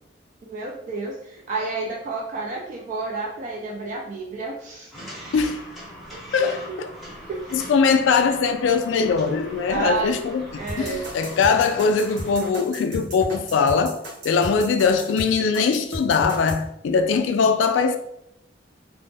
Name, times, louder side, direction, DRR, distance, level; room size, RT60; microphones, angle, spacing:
voice 1, 0.4-4.9 6.4-6.8 7.3-7.7 9.7-10.1 10.5-11.4, right 3 dB, 45° right, 0.3 m, -30 dB
sound 1, 4.9-12.5, equal, ahead, 0.9 m, -41 dB
voice 2, 6.3-6.9 7.5-18.0, left 5 dB, 70° left, 0.3 m, -21 dB
sound 2, 10.7-16.6, equal, 70° right, 1.1 m, -34 dB
2.5 x 2.0 x 3.2 m
head